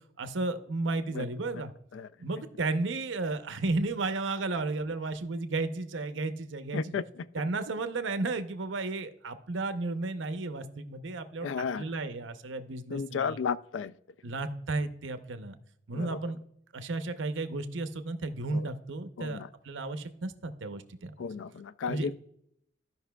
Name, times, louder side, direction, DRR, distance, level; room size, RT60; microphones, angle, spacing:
voice 1, 0.2-1.7 2.2-7.0 7.3-13.4 14.2-15.6 15.9-16.4 16.7-21.3 21.9-22.1, right 3 dB, 85° right, 0.7 m, -33 dB
voice 2, 6.7-7.3 11.4-11.9 12.9-13.9 15.9-16.2 18.5-18.7 19.2-19.5 21.2-22.1, left 6 dB, 90° left, 0.4 m, -34 dB
15.0 x 5.4 x 2.2 m
head